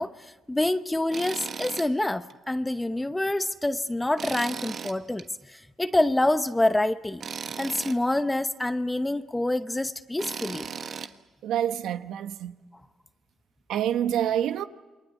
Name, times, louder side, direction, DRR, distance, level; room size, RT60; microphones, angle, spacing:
voice 1, 0.0-7.2 7.6-10.7, left 1 dB, 10° left, 0.8 m, -27 dB
Tools, 1.1-1.9 2.3-2.4 4.2-5.2 7.2-8.0 10.2-11.1, right 6 dB, 55° right, 1.3 m, -36 dB
voice 2, 11.4-12.5 13.7-14.6, right 10 dB, 80° right, 1.0 m, -27 dB
28.5 x 22.5 x 8.3 m
cardioid pair, 90°, 0 cm